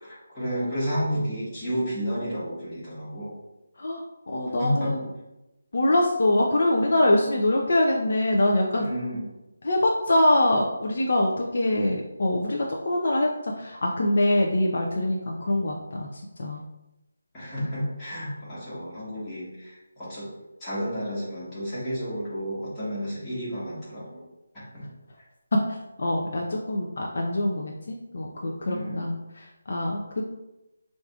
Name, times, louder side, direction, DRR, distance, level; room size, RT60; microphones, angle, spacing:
voice 1, 0.0-3.3 4.6-5.1 8.8-9.2 17.3-24.2 24.5-24.9 25.2-25.3 28.7-29.1, equal, 15° left, -10 dB, 1.4 m, -31 dB
voice 2, 3.8-5.1 5.7-8.9 9.6-16.6 25.7-30.2, left 1 dB, 55° left, -1 dB, 0.5 m, -24 dB
4.8 x 2.6 x 2.3 m, 0.95 s
figure-of-eight pair, 170°, 0 cm